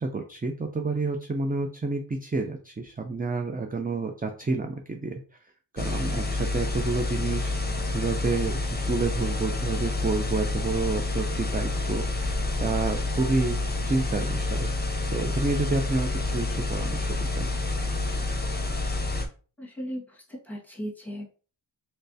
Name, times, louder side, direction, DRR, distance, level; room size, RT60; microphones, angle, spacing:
voice 1, 0.0-5.2 5.7-7.5 7.9-8.6 8.9-14.7 15.1-17.5, right 3 dB, 20° right, 4 dB, 0.4 m, -29 dB
sound 1, 5.8-19.3, left 2 dB, 20° left, 0.7 m, -28 dB
voice 2, 19.6-21.5, equal, 5° left, -2 dB, 1.6 m, -37 dB
3.2 x 3.1 x 2.7 m, 0.37 s
cardioid pair, 40°, 47 cm